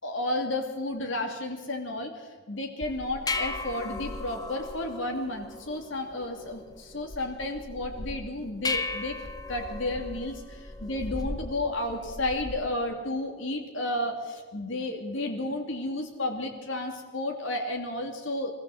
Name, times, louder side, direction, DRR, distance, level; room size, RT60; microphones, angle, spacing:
voice 1, 0.0-9.2 9.5-18.5, left 1 dB, 65° left, 2 dB, 2.7 m, -32 dB
sound 1, 2.8-12.8, left 2 dB, 20° left, 0.9 m, -37 dB
23.5 x 15.5 x 7.8 m, 1.4 s
head